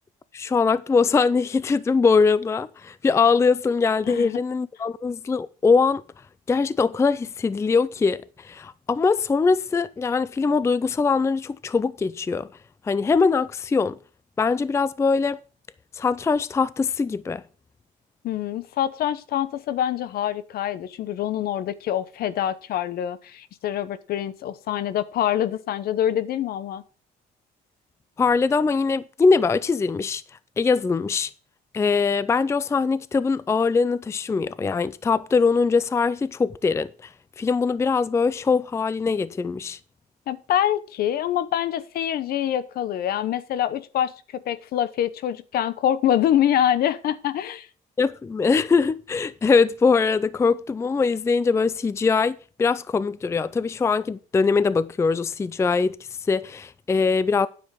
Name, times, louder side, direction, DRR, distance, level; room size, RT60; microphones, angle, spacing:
voice 1, 0.3-6.0 6.5-12.5 12.8-14.0 14.4-15.4 15.9-17.4 28.2-30.2 30.6-31.3 31.7-37.1 37.4-39.8 48.0-56.0 56.3-57.5, left 4 dB, 15° left, 0.4 m, -22 dB
voice 2, 4.1-4.4 18.2-26.8 40.3-47.7, left 11 dB, 65° left, 0.9 m, -25 dB
9.6 x 7.0 x 5.2 m
cardioid pair, 110°, 17 cm